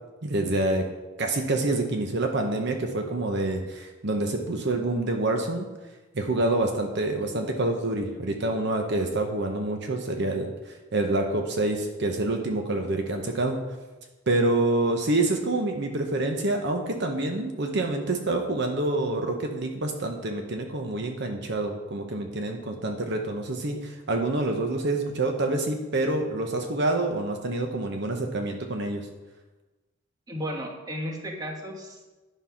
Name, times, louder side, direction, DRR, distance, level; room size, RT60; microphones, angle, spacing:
voice 1, 0.2-0.8 1.2-5.7 6.1-10.5 10.9-13.6 14.3-29.0, right 2 dB, 60° right, 3 dB, 0.9 m, -27 dB
voice 2, 30.3-32.1, equal, 20° right, 1 dB, 1.3 m, -34 dB
10.0 x 5.6 x 5.7 m, 1.2 s
head